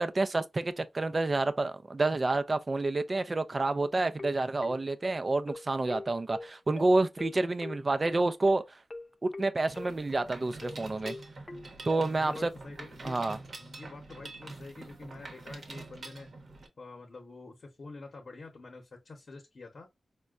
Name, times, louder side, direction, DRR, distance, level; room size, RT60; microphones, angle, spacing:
voice 1, 0.0-8.8 9.2-11.2 11.8-12.5 13.0-13.4, right 2 dB, 40° right, 0.4 m, -29 dB
sound 1, 4.2-12.5, left 2 dB, 30° left, 0.3 m, -43 dB
Mechanisms, 9.7-16.7, right 2 dB, 60° right, 0.9 m, -46 dB
voice 2, 12.1-13.2 13.6-16.3 16.8-19.9, left 3 dB, 60° left, 0.9 m, -47 dB
4.2 x 2.2 x 2.4 m
wide cardioid pair, 75°, 0 cm